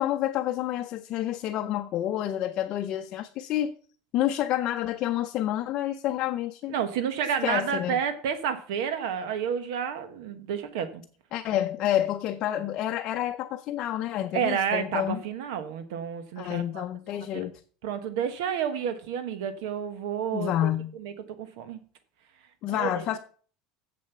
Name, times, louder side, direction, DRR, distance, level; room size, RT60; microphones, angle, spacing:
voice 1, 0.0-3.7 4.1-6.7 7.4-8.0 11.3-15.2 16.4-17.6 20.3-20.9 22.6-23.2, left 12 dB, 35° left, 0.6 m, -29 dB
voice 2, 6.7-11.0 14.3-16.9 17.3-17.5 17.8-20.7 21.0-21.1 21.4-21.8 22.7-23.1, right 8 dB, 75° right, 1.1 m, -30 dB
7.6 x 7.2 x 6.8 m
cardioid pair, 175°, 2 cm